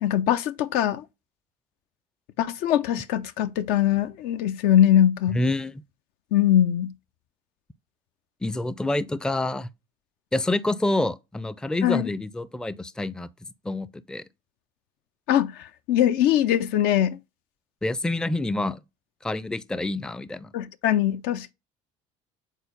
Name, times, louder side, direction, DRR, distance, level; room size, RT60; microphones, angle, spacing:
voice 1, 0.0-1.0 2.4-5.4 6.3-6.9 11.8-12.1 15.3-17.2 20.5-21.5, left 11 dB, 70° left, 0.5 m, -22 dB
voice 2, 5.3-5.7 8.4-9.7 10.3-13.3 13.6-14.2 17.8-18.8 19.2-20.5, left 2 dB, 5° left, 0.4 m, -27 dB
4.6 x 4.0 x 5.1 m
supercardioid pair, 75°, 17 cm